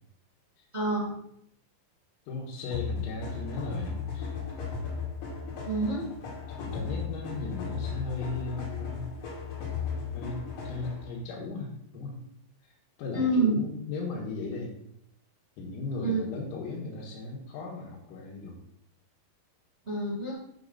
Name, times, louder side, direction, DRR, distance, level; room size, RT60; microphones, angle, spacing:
voice 1, 0.7-1.1 5.6-6.0 13.1-13.6 16.0-16.2 19.8-20.3, right 2 dB, 70° right, -4 dB, 0.6 m, -27 dB
voice 2, 2.3-4.4 6.5-9.1 10.1-12.1 12.6-12.7 13.0-14.7 15.6-18.6, left 3 dB, 85° left, -6 dB, 4.4 m, -37 dB
sound 1, 2.7-11.1, left 6 dB, 60° left, 4.4 m, -36 dB
9.5 x 4.0 x 6.7 m, 0.75 s
omnidirectional pair, 5.9 m